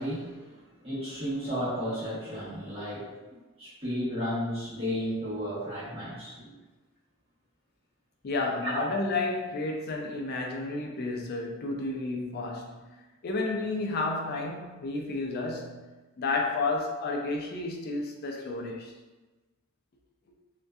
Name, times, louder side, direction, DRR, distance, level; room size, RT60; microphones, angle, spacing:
voice 1, 0.0-6.5 8.6-9.0, equal, 30° right, -11 dB, 1.0 m, -33 dB
voice 2, 8.2-12.8 13.2-15.9 16.2-18.9, left 3 dB, 50° left, 0 dB, 0.4 m, -31 dB
2.6 x 2.2 x 2.2 m, 1.2 s
head